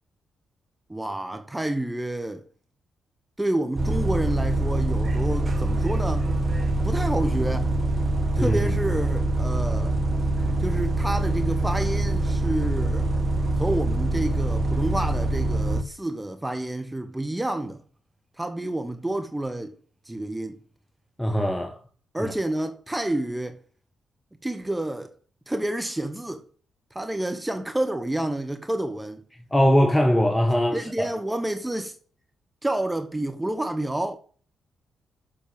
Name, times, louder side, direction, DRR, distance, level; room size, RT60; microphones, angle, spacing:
voice 1, 0.9-2.4 3.4-6.3 6.8-7.7 8.4-10.0 10.6-13.1 13.6-17.8 18.4-19.7 20.0-20.6 22.1-23.6 24.4-25.1 25.5-26.4 26.9-29.2 30.7-32.0 32.6-34.2, right 1 dB, 15° right, 1.3 m, -29 dB
Bus, 3.8-15.8, right 1 dB, 45° right, 1.7 m, -24 dB
voice 2, 8.4-8.7 21.2-21.8 22.2-22.3 29.5-31.1, equal, 15° left, 1.6 m, -21 dB
7.5 x 6.7 x 7.8 m
hypercardioid pair, 40°, 0 cm